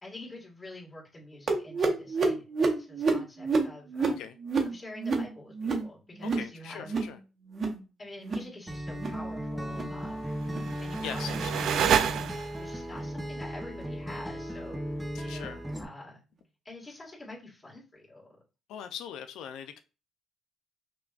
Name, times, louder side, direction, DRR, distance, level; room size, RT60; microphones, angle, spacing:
voice 1, 0.0-4.2 4.6-7.0 8.0-10.4 10.8-11.8 12.5-14.8 15.2-16.2 16.6-18.3, left 1 dB, 25° left, -4 dB, 1.7 m, -46 dB
sound 1, 1.5-6.5 6.8-7.2 7.4-7.8 8.1-8.5 8.9-9.2 9.6-10.0 10.4-10.7 11.2-11.5 12.1-12.3 12.9-13.1 13.8-13.9 14.6-14.7, right 3 dB, 50° right, 0.8 m, -30 dB
voice 2, 4.0-4.4 6.2-7.2 11.0-11.7 15.1-15.6 18.7-19.8, left 8 dB, 85° left, 9 dB, 0.3 m, -41 dB
Acoustic guitar, 8.7-15.8, equal, 5° right, 0.6 m, -36 dB
sound 2, 10.4-12.8, right 8 dB, 75° right, 0.3 m, -29 dB
5.7 x 2.2 x 2.4 m, 0.32 s
cardioid pair, 90°, 0 cm